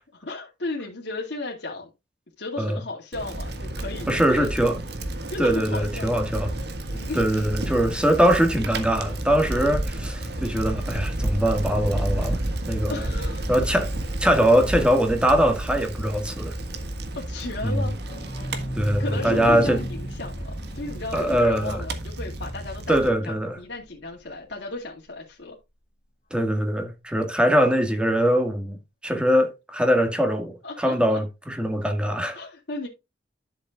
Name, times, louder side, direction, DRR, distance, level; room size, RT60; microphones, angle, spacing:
voice 1, 0.1-1.9 2.4-4.5 5.3-6.1 6.9-7.5 9.5-9.7 12.9-13.8 17.1-17.9 19.0-23.0 23.2-25.6 30.6-31.2 32.3-32.9, left 2 dB, 70° left, 2.3 m, -34 dB
Bicycle, 3.1-23.1, right 1 dB, 65° right, 1.6 m, -31 dB
voice 2, 4.1-4.8 5.4-6.5 7.1-12.4 12.7-13.0 13.5-13.9 14.2-16.5 17.6-17.9 18.7-19.8 21.1-21.8 22.9-23.6 26.3-32.4, equal, 5° right, 1.7 m, -22 dB
sound 1, 17.7-23.2 23.6-23.7 23.8-23.9 24.2-24.3, equal, 40° left, 1.7 m, -36 dB
12.0 x 7.1 x 2.4 m
head